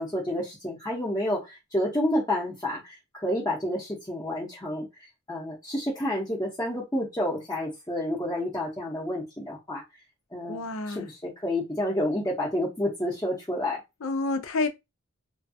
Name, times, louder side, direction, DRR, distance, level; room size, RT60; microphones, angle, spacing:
voice 1, 0.0-4.9 5.3-9.8 10.3-13.8, left 1 dB, 15° left, 0.7 m, -29 dB
voice 2, 10.5-11.1 14.0-14.7, left 3 dB, 75° left, 0.5 m, -29 dB
3.1 x 2.3 x 2.6 m
head